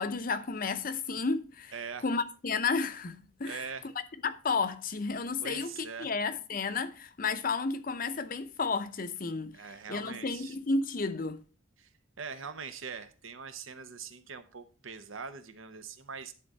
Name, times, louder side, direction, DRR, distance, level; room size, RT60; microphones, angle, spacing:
voice 1, 0.0-1.7 2.0-3.6 4.2-5.7 6.0-9.6 9.9-11.4, left 4 dB, 40° left, 0.6 m, -32 dB
voice 2, 1.7-2.0 3.4-3.9 5.4-6.1 9.5-10.6 11.8-11.9 12.2-16.3, right 5 dB, 75° right, 0.9 m, -42 dB
11.0 x 3.7 x 5.3 m
head